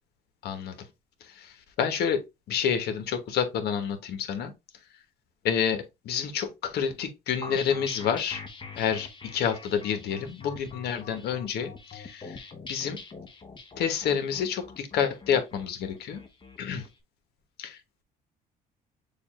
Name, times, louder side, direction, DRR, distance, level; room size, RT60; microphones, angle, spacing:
voice 1, 0.4-0.8 1.2-4.5 5.4-8.4 8.8-12.4 12.7-13.0 13.8-16.2 16.6-16.9 17.6-18.0, left 7 dB, 70° left, 1.1 m, -29 dB
sound 1, 7.4-16.9, left 4 dB, 30° left, 1.0 m, -43 dB
6.9 x 2.4 x 3.0 m
cardioid pair, 110°, 17 cm